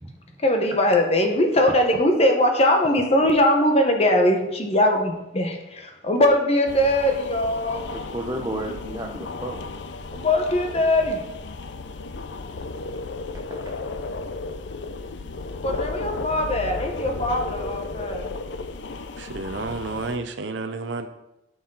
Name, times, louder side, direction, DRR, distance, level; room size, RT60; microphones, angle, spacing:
voice 1, 0.4-7.8 10.1-11.2 15.6-18.3, left 1 dB, 35° left, 3 dB, 1.3 m, -21 dB
voice 2, 1.7-2.0 7.9-9.6, right 1 dB, 20° right, 1 dB, 0.8 m, -32 dB
sound 1, 6.7-20.2, left 3 dB, 75° left, 0.6 m, -34 dB
voice 3, 19.2-21.1, right 3 dB, 80° right, 7 dB, 0.7 m, -31 dB
12.5 x 6.2 x 4.0 m, 0.92 s
head